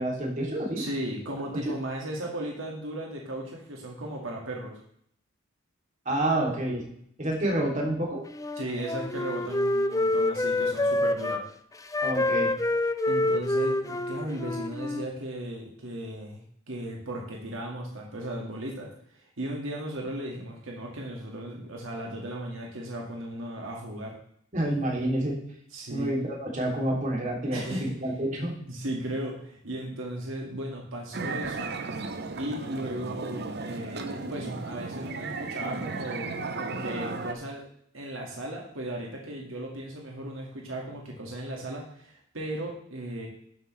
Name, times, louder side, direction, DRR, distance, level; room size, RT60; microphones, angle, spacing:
voice 1, 0.0-0.8 1.6-1.7 6.0-6.8 7.2-8.2 12.0-12.5 24.5-25.3 25.9-27.6 28.0-28.5, right 1 dB, 35° right, -2 dB, 2.9 m, -28 dB
voice 2, 0.8-4.8 8.5-11.4 12.8-24.1 25.7-26.1 27.5-27.9 28.6-31.7 32.4-37.7 37.9-43.3, right 1 dB, 75° right, -1 dB, 2.0 m, -36 dB
Wind instrument woodwind instrument, 8.3-11.4 11.9-15.1, left 2 dB, 15° left, 0.5 m, -27 dB
sound 1, 31.1-37.3, right 3 dB, 55° right, 0.9 m, -35 dB
12.5 x 7.9 x 3.3 m, 0.68 s
head